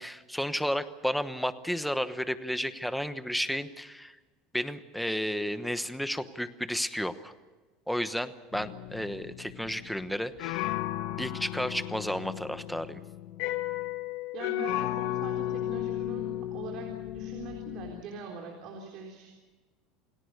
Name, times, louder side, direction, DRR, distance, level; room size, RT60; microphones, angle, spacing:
voice 1, 0.0-4.2 4.5-7.3 7.9-10.7 11.2-13.0, equal, ahead, 11 dB, 1.1 m, -32 dB
sound 1, 8.5-18.0, left 13 dB, 65° left, 1.3 m, -34 dB
voice 2, 14.3-19.3, right 5 dB, 50° right, 1 dB, 3.8 m, -43 dB
28.0 x 18.0 x 6.7 m, 1.3 s
supercardioid pair, 145°, 0 cm